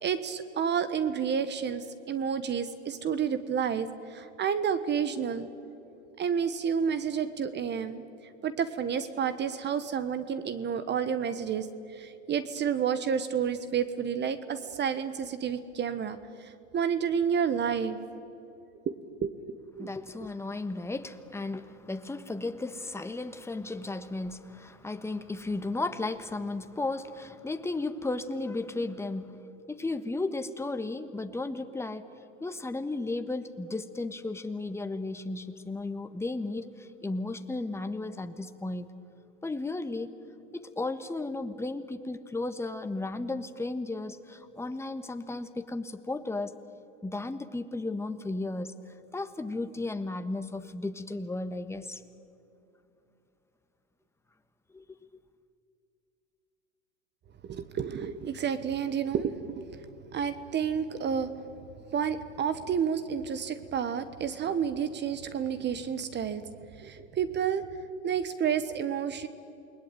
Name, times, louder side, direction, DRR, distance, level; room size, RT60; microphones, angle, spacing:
voice 1, 0.0-5.5 6.2-8.0 8.4-11.7 11.9-18.0 18.9-19.0 19.2-19.9 57.4-59.7 60.1-61.4 61.9-66.5 66.8-67.6 68.0-69.3, right 7 dB, 30° right, 12 dB, 1.3 m, -30 dB
voice 2, 19.8-29.4 29.7-32.1 32.4-38.9 39.4-40.1 40.5-46.6 47.0-52.0 54.7-54.8, left 2 dB, 5° left, 9 dB, 1.5 m, -34 dB
28.5 x 20.5 x 9.1 m, 2.8 s
hypercardioid pair, 100°, 36 cm